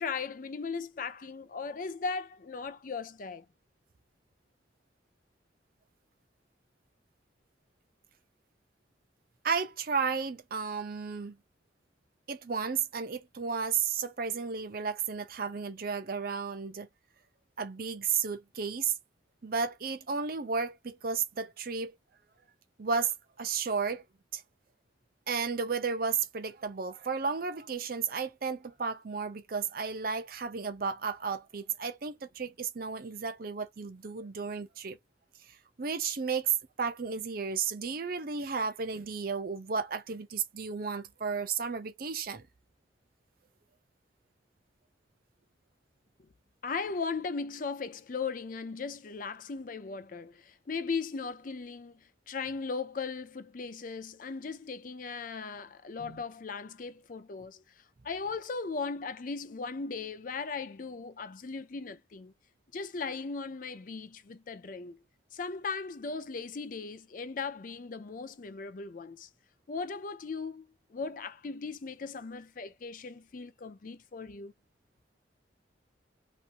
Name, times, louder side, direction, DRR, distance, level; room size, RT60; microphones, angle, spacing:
voice 1, 0.0-3.5 46.6-57.6 58.0-62.3 62.7-65.0 65.3-69.3 69.7-74.5, left 4 dB, 45° left, 0.5 m, -38 dB
voice 2, 9.4-11.4 12.3-16.9 17.6-18.9 19.4-21.9 22.8-24.0 24.3-24.4 25.3-35.0 35.8-42.4 56.0-56.2, right 5 dB, 50° right, 0.6 m, -33 dB
3.0 x 2.6 x 2.5 m
head